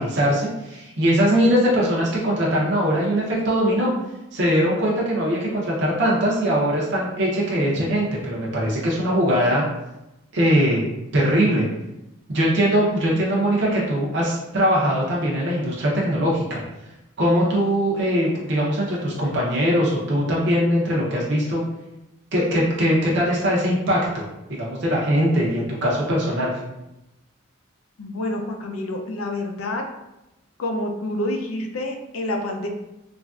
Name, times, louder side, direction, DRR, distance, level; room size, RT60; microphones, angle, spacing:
voice 1, 0.0-3.9 4.3-9.6 10.3-10.8 11.1-11.6 12.3-16.6 17.2-21.6 22.3-24.2 24.5-26.5, equal, 55° right, -5 dB, 0.6 m, -21 dB
voice 2, 28.0-29.8 30.6-32.7, left 1 dB, 80° left, 3 dB, 0.5 m, -28 dB
3.2 x 2.5 x 2.3 m, 0.94 s
head